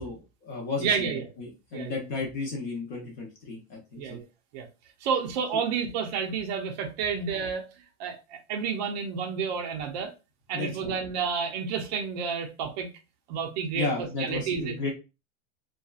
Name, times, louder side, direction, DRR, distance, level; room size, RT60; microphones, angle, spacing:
voice 1, 0.0-4.2 10.5-10.9 13.7-14.9, left 3 dB, 35° left, 0.7 m, -33 dB
voice 2, 0.8-1.3 1.7-2.0 4.0-4.2 4.5-4.7 5.0-7.7 8.0-10.1 10.5-12.9 13.3-13.9 14.2-14.8, right 6 dB, 35° right, 0.5 m, -30 dB
2.7 x 2.3 x 2.3 m
supercardioid pair, 165°, 37 cm